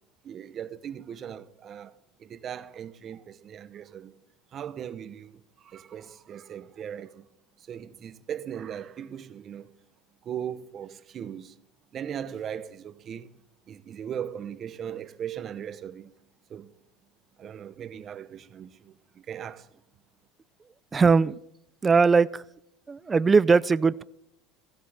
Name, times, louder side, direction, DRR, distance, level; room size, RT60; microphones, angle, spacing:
voice 1, 0.2-4.1 4.5-7.2 7.7-9.7 10.2-11.5 11.9-13.3 13.7-16.1 16.5-16.7 17.4-19.7, right 9 dB, 35° right, 0.9 m, -38 dB
voice 2, 20.9-21.3 21.8-22.4 22.9-24.0, right 4 dB, 20° right, 0.4 m, -20 dB
16.0 x 15.5 x 3.5 m
supercardioid pair, 130°, 0 cm